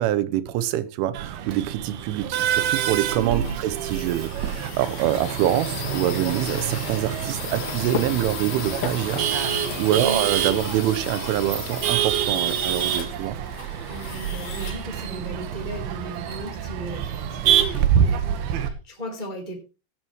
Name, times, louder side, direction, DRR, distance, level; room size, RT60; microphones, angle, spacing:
voice 1, 0.0-9.2 9.8-13.4, right 12 dB, 85° right, 3.3 m, -25 dB
Male speech man speaking / Laughter / Chatter, 1.1-18.7, right 9 dB, 70° right, 2.5 m, -27 dB
voice 2, 3.1-3.6 10.0-10.2 13.9-19.6, right 1 dB, 10° right, 2.4 m, -36 dB
sound 1, 3.3-15.7, left 8 dB, 65° left, 3.9 m, -37 dB
sound 2, 6.4-12.4, left 8 dB, 85° left, 4.8 m, -38 dB
16.5 x 11.0 x 3.1 m
omnidirectional pair, 5.7 m